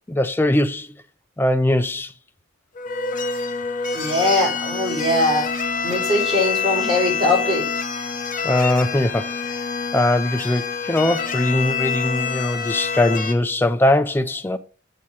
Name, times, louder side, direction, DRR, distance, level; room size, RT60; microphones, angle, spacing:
voice 1, 0.1-0.9 1.4-2.1 8.4-9.6 9.9-14.6, left 1 dB, 10° left, 0.3 m, -20 dB
sound 1, 2.7-13.3, left 5 dB, 40° left, 0.7 m, -26 dB
voice 2, 3.9-5.5 5.8-7.6, left 1 dB, 25° right, 3.9 m, -21 dB
7.3 x 4.3 x 4.8 m
head